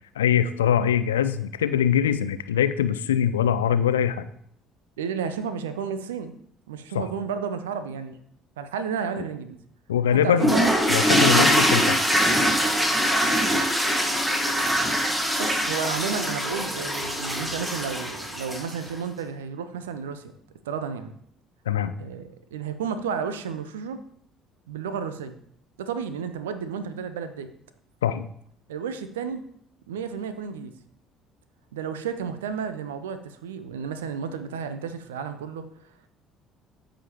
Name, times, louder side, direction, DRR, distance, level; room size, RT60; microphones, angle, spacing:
voice 1, 0.2-4.3 6.9-7.1 9.9-10.5 10.9-12.0 21.7-21.9 28.0-28.3, left 9 dB, 75° left, 12 dB, 0.4 m, -23 dB
voice 2, 5.0-6.3 6.7-8.2 8.6-9.6 10.2-10.8 11.4-11.6 15.4-20.3 20.6-21.1 22.0-24.0 24.7-25.3 25.8-27.5 28.7-29.4 29.9-30.7 31.7-35.7, right 6 dB, 70° right, 11 dB, 0.6 m, -32 dB
sound 1, 10.4-18.9, equal, 10° right, 1.4 m, -23 dB
13.5 x 5.1 x 2.9 m, 0.68 s
figure-of-eight pair, 55°, 0 cm